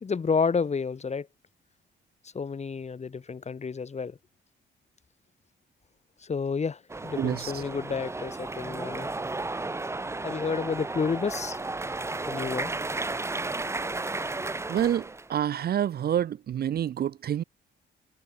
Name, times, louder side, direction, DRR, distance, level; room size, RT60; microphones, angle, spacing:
voice 1, 0.0-1.3 2.3-4.2 6.2-9.1 10.2-11.6 12.3-12.7, left 5 dB, 35° left, 2.2 m, -30 dB
sound 1, 6.9-15.3, right 2 dB, 15° right, 0.8 m, -33 dB
voice 2, 7.2-7.6 14.7-17.4, right 10 dB, 50° right, 0.6 m, -28 dB
cardioid pair, 90°, 20 cm